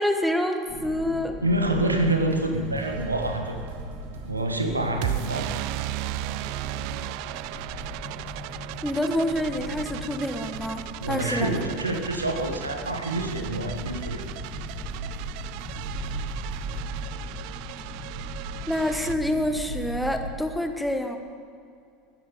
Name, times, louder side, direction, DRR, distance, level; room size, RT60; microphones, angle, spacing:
voice 1, 0.0-1.4 8.8-11.5 18.7-21.2, left 1 dB, ahead, 5 dB, 1.3 m, -27 dB
sound 1, 0.7-20.2, right 1 dB, 35° left, 4.4 m, -38 dB
voice 2, 1.4-3.6 4.3-5.7 11.0-14.2, right 1 dB, 85° right, 5 dB, 1.3 m, -27 dB
sound 2, 2.0-17.0, right 4 dB, 65° right, 1.9 m, -49 dB
sound 3, 2.8-19.1, right 17 dB, 50° right, 0.3 m, -37 dB
21.0 x 10.0 x 5.1 m, 2.4 s
figure-of-eight pair, 75°, 0 cm